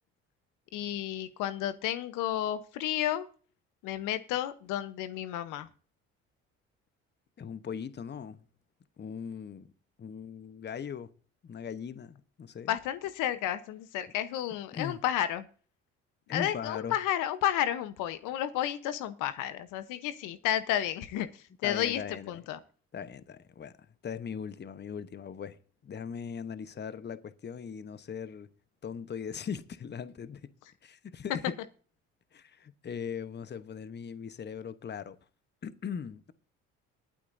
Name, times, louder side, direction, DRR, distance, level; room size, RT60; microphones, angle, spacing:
voice 1, 0.7-3.3 3.8-5.7 12.7-15.5 16.3-21.3 21.6-22.0 22.3-22.6, left 12 dB, 75° left, 1.0 m, -31 dB
voice 2, 7.4-8.4 9.0-9.7 10.0-11.1 11.4-12.8 14.7-15.0 16.3-17.0 21.6-22.4 22.9-23.7 24.0-25.6 25.8-28.5 28.8-30.5 30.8-31.6 32.3-35.2 35.6-36.3, left 7 dB, 35° left, 1.0 m, -39 dB
21.5 x 8.3 x 2.6 m
supercardioid pair, 65°, 32 cm